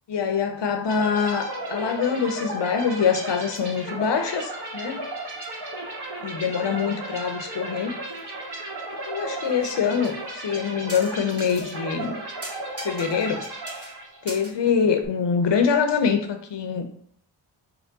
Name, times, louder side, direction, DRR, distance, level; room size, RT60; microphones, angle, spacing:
voice 1, 0.1-5.0 6.2-8.0 9.1-12.2 12.8-13.5 14.2-16.8, left 6 dB, 60° left, 6 dB, 0.7 m, -24 dB
sound 1, 0.9-14.4, right 1 dB, 55° right, 1.2 m, -35 dB
sound 2, 9.4-9.8 10.0-10.1 10.9-11.7 12.0-12.1 12.4-13.4 13.7-13.9 14.3-15.1, right 1 dB, 30° right, 1.5 m, -39 dB
4.4 x 2.2 x 4.0 m, 0.64 s
cardioid pair, 50°, 49 cm